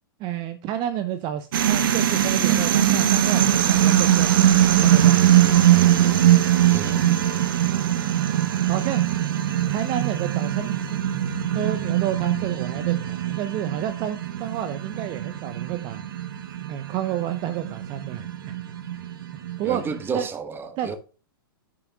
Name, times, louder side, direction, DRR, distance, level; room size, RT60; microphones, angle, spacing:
voice 1, 0.2-5.2 6.0-6.2 7.4-7.5 8.7-9.0 9.7-11.0 11.5-16.0 16.7-18.6 18.9-19.0 19.6-19.8 20.1-20.3 20.8-21.0, right 11 dB, 40° right, 0.9 m, -30 dB
sound 1, 1.5-20.0, right 11 dB, 70° right, 1.1 m, -21 dB
voice 2, 6.7-7.3 19.6-21.0, right 5 dB, 20° right, 1.3 m, -31 dB
10.0 x 8.8 x 2.3 m
hypercardioid pair, 110°, 12 cm